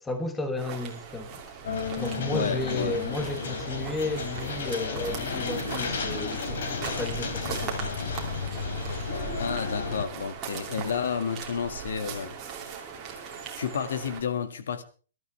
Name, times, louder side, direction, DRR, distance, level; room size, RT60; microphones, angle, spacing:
voice 1, 0.0-1.3 2.0-8.0, left 2 dB, 5° left, 1.2 m, -33 dB
sound 1, 0.6-14.2, right 6 dB, 15° right, 2.8 m, -40 dB
sound 2, 1.6-10.0, left 5 dB, 65° left, 3.0 m, -33 dB
voice 2, 2.3-3.0 9.3-12.3 13.3-14.8, left 7 dB, 80° left, 2.0 m, -31 dB
sound 3, 6.5-12.7, right 10 dB, 50° right, 1.1 m, -45 dB
23.0 x 12.5 x 3.4 m
hypercardioid pair, 175°, 0 cm